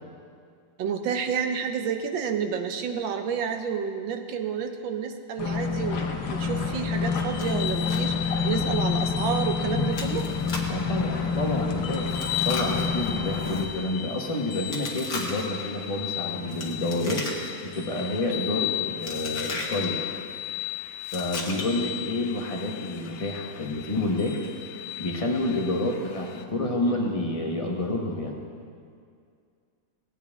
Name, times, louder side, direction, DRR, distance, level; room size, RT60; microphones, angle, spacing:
voice 1, 0.8-6.0 6.3-8.2 8.4-10.3 21.7-21.9 25.6-25.9, right 7 dB, 70° right, 6 dB, 1.4 m, -30 dB
sound 1, 5.4-13.6, left 5 dB, 65° left, 1.5 m, -28 dB
sound 2, 7.1-26.4, left 12 dB, 80° left, 1.6 m, -36 dB
Chewing mastication, 7.4-8.1 8.3-8.4 8.9-9.1 9.9-10.8 12.1-13.7 14.7-15.6 16.5-17.7 18.0-18.3 19.0-19.9 21.0-21.9, left 3 dB, 45° left, 1.6 m, -36 dB
voice 2, 10.7-17.3 17.6-20.0 21.1-24.4 25.0-28.3, left 2 dB, 30° left, -1 dB, 0.6 m, -29 dB
18.0 x 9.2 x 3.6 m, 2.2 s
omnidirectional pair, 2.4 m